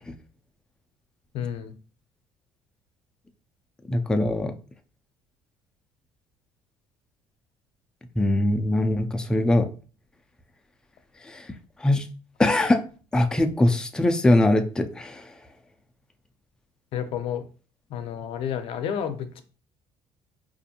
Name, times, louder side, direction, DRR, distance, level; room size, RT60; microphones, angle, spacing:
voice 1, 1.3-1.7 16.9-17.5 17.9-19.4, left 8 dB, 60° left, 0.5 m, -30 dB
voice 2, 3.9-4.6 8.2-9.7 11.2-11.5 11.8-12.1 12.4-12.8 13.1-15.3, left 1 dB, 5° left, 0.4 m, -22 dB
4.4 x 2.5 x 2.8 m
cardioid pair, 135°, 11 cm